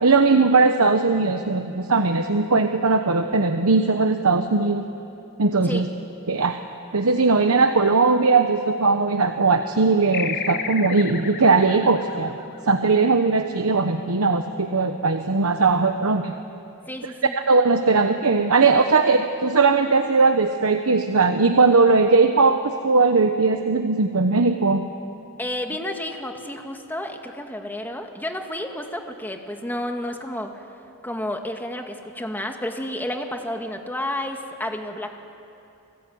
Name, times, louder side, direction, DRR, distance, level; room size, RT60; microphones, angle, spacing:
voice 1, 0.0-4.9 5.4-5.9 6.3-6.6 6.9-12.3 12.7-16.3 17.5-24.8, right 4 dB, 85° right, 6 dB, 1.1 m, -19 dB
sound 1, 10.1-13.1, left 6 dB, 45° left, 1.5 m, -32 dB
voice 2, 16.9-17.3 25.4-30.6 31.0-35.2, left 1 dB, 10° left, 4 dB, 2.0 m, -31 dB
29.0 x 19.5 x 9.4 m, 2.7 s
head